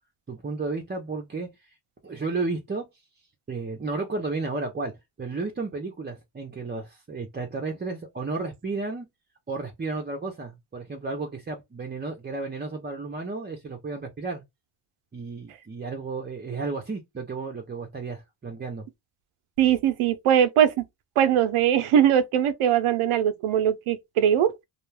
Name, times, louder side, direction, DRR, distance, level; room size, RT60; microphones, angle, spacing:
voice 1, 0.3-1.8 2.0-2.9 3.5-4.9 5.2-9.1 9.5-14.4 15.1-18.8, right 3 dB, 20° right, 0.5 m, -33 dB
voice 2, 19.6-20.8 21.2-24.5, right 9 dB, 85° right, 0.6 m, -21 dB
2.4 x 2.2 x 3.1 m
cardioid pair, 80°, 49 cm